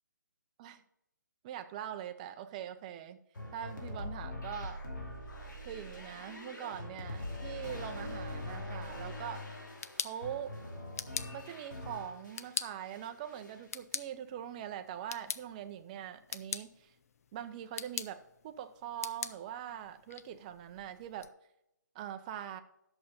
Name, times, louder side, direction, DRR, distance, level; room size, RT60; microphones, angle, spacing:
voice 1, 1.4-3.2 3.5-4.8 5.6-9.5 9.9-10.5 11.3-16.9 17.3-21.3 21.9-22.6, right 10 dB, 25° right, 9 dB, 0.6 m, -43 dB
sound 1, 3.3-12.5 12.8-13.6, left 1 dB, 75° left, 2.6 m, -43 dB
sound 2, 9.5-21.3, left 7 dB, 50° left, 0.5 m, -44 dB
11.0 x 6.7 x 4.2 m, 0.83 s
hypercardioid pair, 155°, 10 cm